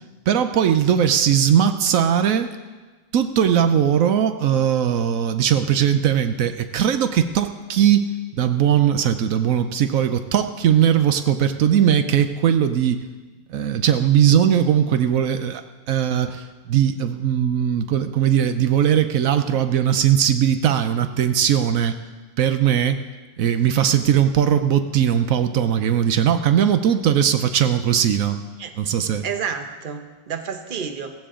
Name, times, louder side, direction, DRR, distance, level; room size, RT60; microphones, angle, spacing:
voice 1, 0.3-2.5 3.1-8.1 8.3-13.0 13.5-22.0 22.4-23.0 23.4-28.4 28.8-29.2, right 9 dB, 80° right, 9 dB, 1.1 m, -19 dB
voice 2, 29.2-31.1, right 7 dB, 40° right, 7 dB, 1.0 m, -30 dB
16.0 x 15.5 x 3.8 m, 1.3 s
omnidirectional pair, 1.4 m